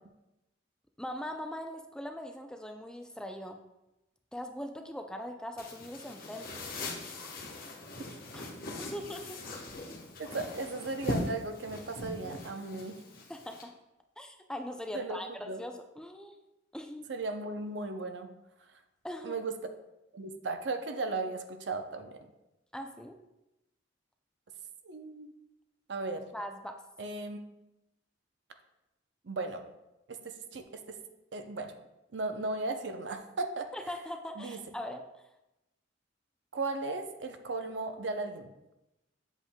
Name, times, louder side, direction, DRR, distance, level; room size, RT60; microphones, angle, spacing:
voice 1, 1.0-3.6 4.3-6.7 8.3-8.5 8.8-9.4 13.3-13.7 14.2-16.4 16.7-17.1 19.0-19.4 22.7-23.2 26.3-26.8 33.7-35.2, left 1 dB, 5° left, 5 dB, 0.4 m, -41 dB
sound 1, 5.6-13.6, left 1 dB, 50° left, 1.1 m, -40 dB
voice 2, 10.2-13.0 14.9-15.2 15.5-15.6 17.1-18.3 19.2-19.5 20.1-22.2 24.8-25.3 25.9-26.3 27.0-27.4 29.2-29.7 30.1-31.0 31.3-31.7 32.1-33.7 34.4-34.6 36.5-38.5, right 3 dB, 65° right, 7 dB, 0.6 m, -36 dB
8.0 x 7.4 x 2.2 m, 0.94 s
head